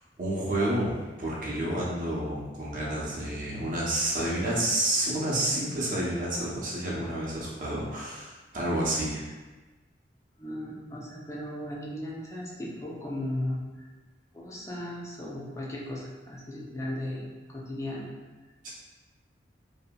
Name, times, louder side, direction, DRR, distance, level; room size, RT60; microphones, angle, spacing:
voice 1, 0.2-9.2 18.6-18.7, right 1 dB, 45° right, -6 dB, 0.7 m, -29 dB
voice 2, 10.4-13.9 14.3-18.1, left 1 dB, 15° left, -4 dB, 0.4 m, -36 dB
2.7 x 2.6 x 2.2 m, 1.2 s
head